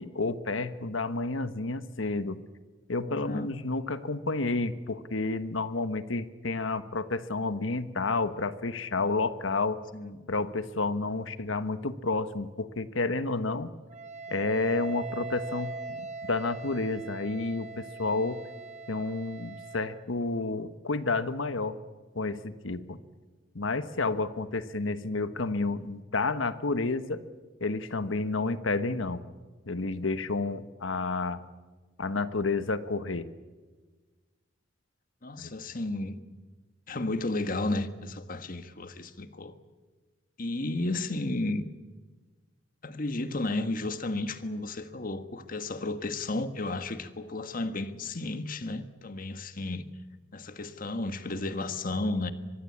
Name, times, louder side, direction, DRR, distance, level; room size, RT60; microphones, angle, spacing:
voice 1, 0.0-2.4 2.9-9.8 10.3-13.7 14.3-18.4 18.9-21.8 22.1-23.0 23.5-27.2 27.6-29.2 29.7-31.4 32.0-33.3 35.4-35.5, left 3 dB, 90° left, 1.3 m, -30 dB
voice 2, 3.0-3.5 9.9-10.2 35.2-36.2 36.9-39.5 40.4-41.6 42.8-49.9 50.3-52.3, left 2 dB, 45° left, 1.5 m, -33 dB
Wind instrument woodwind instrument, 13.9-20.0, right 4 dB, 35° right, 1.4 m, -41 dB
24.0 x 22.0 x 8.7 m
head